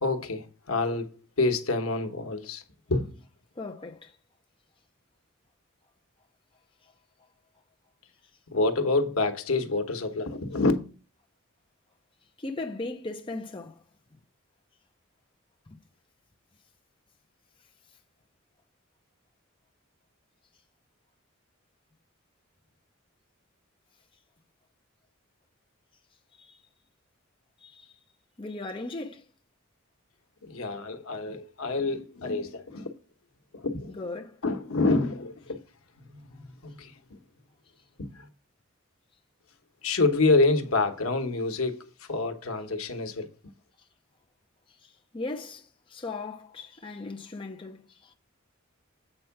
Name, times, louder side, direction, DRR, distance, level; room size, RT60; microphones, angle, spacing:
voice 1, 0.0-1.1 1.4-2.6 2.9-3.2 8.5-10.7 30.4-32.9 33.5-33.9 34.4-35.6 36.0-37.2 38.0-38.3 39.8-43.5, left 3 dB, 85° left, 1.1 m, -27 dB
voice 2, 3.6-4.1 12.4-13.8 15.7-15.8 26.3-26.6 27.6-27.9 28.4-29.2 33.9-34.4 44.8-48.1, left 2 dB, 25° left, 0.7 m, -38 dB
7.9 x 4.5 x 5.8 m
head